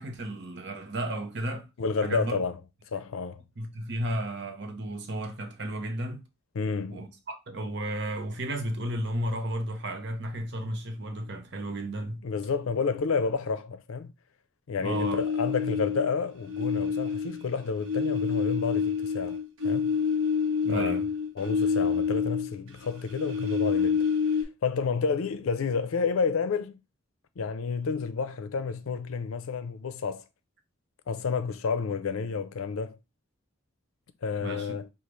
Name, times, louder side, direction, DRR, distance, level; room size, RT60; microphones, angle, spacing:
voice 1, 0.0-1.7 2.0-2.4 3.6-6.2 6.9-12.2 14.8-15.2 20.6-21.1 34.4-34.7, right 1 dB, 55° right, 0.9 m, -33 dB
voice 2, 1.8-2.6 2.9-3.4 6.5-7.1 12.2-14.1 14.7-19.4 19.6-19.9 20.7-21.0 21.4-24.1 24.4-26.8 27.4-30.2 31.1-33.0 34.2-34.9, left 5 dB, 90° left, 0.5 m, -30 dB
sound 1, 14.8-16.1 16.5-22.6 22.8-24.4, left 6 dB, 75° right, 1.0 m, -28 dB
5.1 x 2.4 x 3.0 m
head